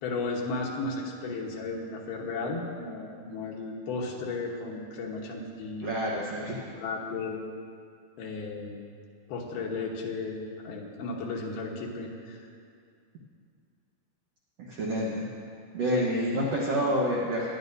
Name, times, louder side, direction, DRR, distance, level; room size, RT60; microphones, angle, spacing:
voice 1, 0.0-6.0 6.7-7.4 8.2-8.8 9.3-12.5 15.9-16.1, left 3 dB, 75° left, -1 dB, 3.1 m, -34 dB
voice 2, 5.8-6.6 14.7-15.3 15.7-17.5, equal, 75° right, -4 dB, 1.5 m, -28 dB
19.0 x 11.0 x 2.7 m, 2.3 s
omnidirectional pair, 4.5 m